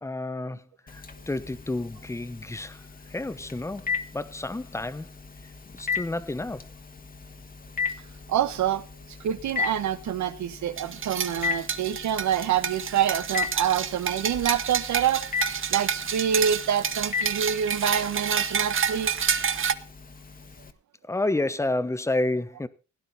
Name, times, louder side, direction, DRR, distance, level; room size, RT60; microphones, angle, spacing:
voice 1, 0.0-2.8 3.1-5.1 5.7-6.7 21.1-22.7, left 2 dB, 10° left, 1.0 m, -30 dB
Telephone, 0.9-20.7, left 6 dB, 30° left, 1.6 m, -37 dB
voice 2, 8.3-8.8 9.2-15.2 15.7-19.1, right 9 dB, 70° right, 1.3 m, -26 dB
sound 1, 10.8-19.7, right 7 dB, 45° right, 1.0 m, -29 dB
17.0 x 10.0 x 4.2 m
cardioid pair, 90°, 30 cm